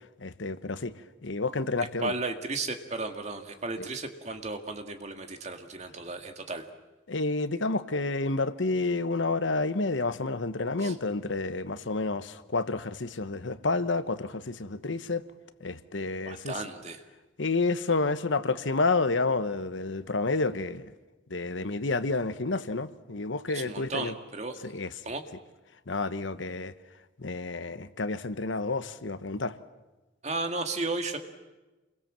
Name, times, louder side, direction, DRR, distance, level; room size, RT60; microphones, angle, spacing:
voice 1, 0.2-0.9 1.2-2.1 3.8-3.9 7.1-15.2 15.6-16.6 17.4-20.9 21.3-24.1 24.6-24.9 25.9-26.7 27.2-29.5, left 3 dB, 80° left, 1.1 m, -29 dB
voice 2, 2.0-6.7 10.8-11.0 16.2-17.0 23.5-24.6 25.0-25.2 30.2-31.2, right 3 dB, 35° right, 2.0 m, -34 dB
28.5 x 22.5 x 7.6 m
head